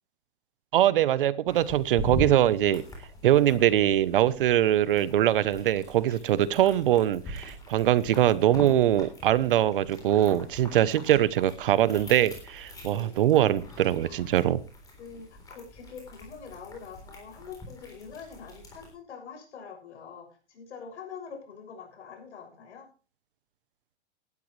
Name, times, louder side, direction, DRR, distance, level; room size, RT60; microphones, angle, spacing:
voice 1, 0.7-2.8 3.2-14.6, right 12 dB, 50° right, 18 dB, 0.8 m, -23 dB
sound 1, 1.5-18.9, equal, 10° left, 3.7 m, -42 dB
voice 2, 12.9-13.3 14.0-14.4 15.0-22.9, left 6 dB, 75° left, 4 dB, 6.7 m, -45 dB
17.5 x 12.5 x 3.2 m, 0.35 s
hypercardioid pair, 170°, 34 cm